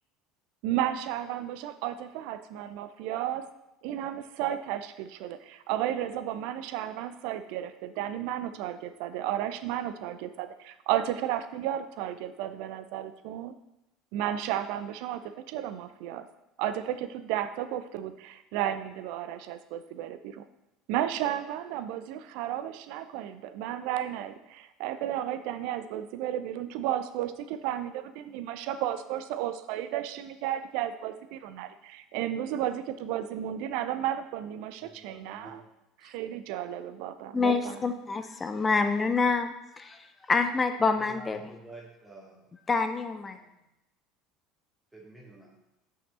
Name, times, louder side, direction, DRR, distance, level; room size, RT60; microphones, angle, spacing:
voice 1, 0.6-3.5 3.8-13.5 14.1-16.3 16.6-20.4 20.9-35.6 36.0-37.8, right 11 dB, 60° right, 12 dB, 0.5 m, -33 dB
voice 2, 34.9-35.7 40.9-42.4 43.3-43.5 44.9-45.5, right 2 dB, 10° right, -3 dB, 2.1 m, -49 dB
voice 3, 37.3-41.6 42.7-43.4, left 4 dB, 25° left, 8 dB, 0.5 m, -27 dB
5.9 x 5.7 x 4.2 m, 0.91 s
figure-of-eight pair, 70°, 0 cm